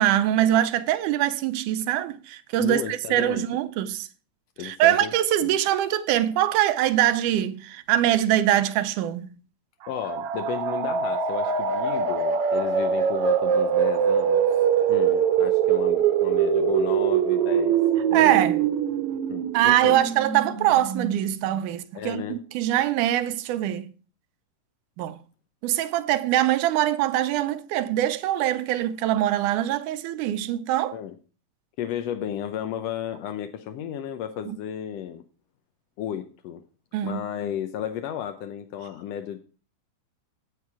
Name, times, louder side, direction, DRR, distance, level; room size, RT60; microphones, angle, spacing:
voice 1, 0.0-4.1 4.6-9.3 18.1-18.6 19.5-23.9 25.0-25.2 25.6-30.9 34.5-34.6 36.9-37.2, right 13 dB, 85° right, 2.2 m, -23 dB
voice 2, 2.6-3.4 4.6-5.1 5.4-5.5 9.9-17.8 18.1-18.5 19.3-20.0 21.9-22.4 30.9-31.1 31.8-35.2 36.0-36.6 37.0-39.4, left 10 dB, 75° left, 1.5 m, -33 dB
sound 1, 9.8-21.5, right 7 dB, 65° right, 1.6 m, -23 dB
9.1 x 8.5 x 4.7 m
omnidirectional pair, 3.6 m